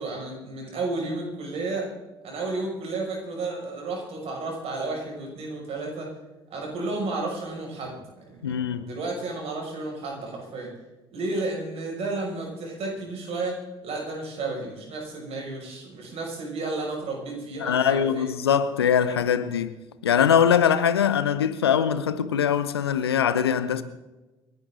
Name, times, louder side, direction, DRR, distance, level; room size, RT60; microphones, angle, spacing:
voice 1, 0.0-1.9 2.2-6.1 6.5-10.7 11.1-18.3, right 2 dB, 50° right, 6.2 m, -32 dB
voice 2, 8.4-8.8 17.6-19.8 20.0-23.8, left 8 dB, 80° left, 0.8 m, -22 dB
29.0 x 11.0 x 3.9 m
figure-of-eight pair, 50°, 13 cm